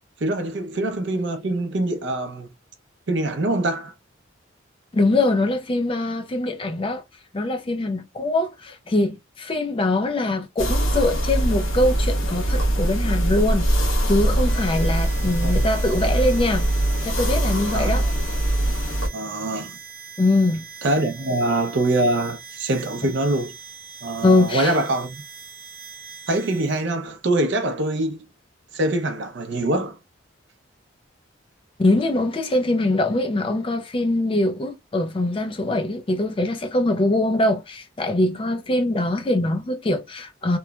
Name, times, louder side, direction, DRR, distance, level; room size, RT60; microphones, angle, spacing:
voice 1, 0.2-2.5 3.1-3.9 15.3-15.5 17.7-17.9 19.1-19.8 20.8-23.5 24.0-25.2 26.3-28.3 28.7-30.0, right 2 dB, 60° right, 0.5 m, -24 dB
voice 2, 4.9-7.0 7.3-13.7 14.1-16.7 17.0-18.1 20.2-20.7 23.0-23.1 24.2-24.8 31.8-40.6, left 2 dB, 25° left, 0.4 m, -22 dB
sound 1, 10.6-19.1, right 1 dB, 75° left, 0.9 m, -22 dB
Harmonica, 14.4-26.9, right 6 dB, 40° right, 1.0 m, -41 dB
3.0 x 2.1 x 2.2 m
head